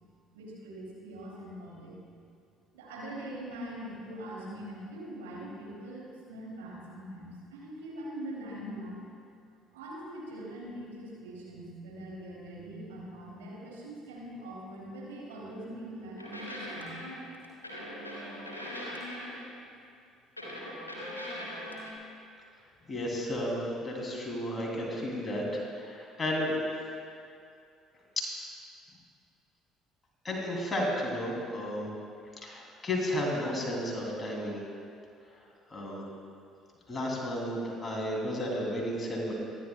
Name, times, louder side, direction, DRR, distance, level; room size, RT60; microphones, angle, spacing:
voice 1, 0.3-1.9 2.7-9.0 9.7-16.9 17.2-17.3, right 1 dB, 70° right, -5 dB, 3.1 m, -42 dB
sound 1, 16.2-19.7 20.4-21.9, equal, 85° left, 1.7 m, -40 dB
voice 2, 22.9-26.5 28.2-28.3 30.2-31.9 32.4-34.6 35.7-36.0 36.9-39.3, left 1 dB, 25° left, -2 dB, 3.1 m, -33 dB
23.5 x 11.0 x 2.3 m, 2.4 s
figure-of-eight pair, 55°, 0 cm